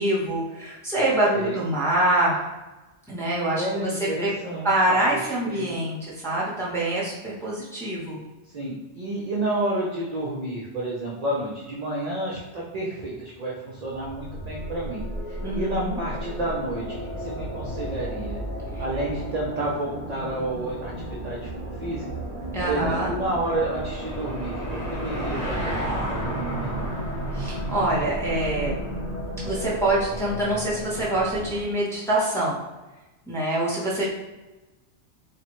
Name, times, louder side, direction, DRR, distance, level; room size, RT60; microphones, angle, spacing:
voice 1, 0.0-2.4 3.1-3.9 4.2-4.3 4.6-8.2 15.4-16.0 18.7-18.8 22.5-23.1 27.3-28.7 29.4-32.6 33.3-34.0, right 1 dB, 5° left, -6 dB, 0.6 m, -25 dB
voice 2, 3.5-5.7 8.5-16.8 17.2-18.4 18.8-22.1 22.6-27.0, right 1 dB, 50° right, -4 dB, 0.5 m, -30 dB
sound 1, 13.6-31.6, equal, 40° left, 0.7 m, -33 dB
Car passing by / Engine, 22.3-29.2, equal, 65° left, 1.4 m, -34 dB
3.2 x 2.1 x 2.9 m, 1.1 s
omnidirectional pair, 1.2 m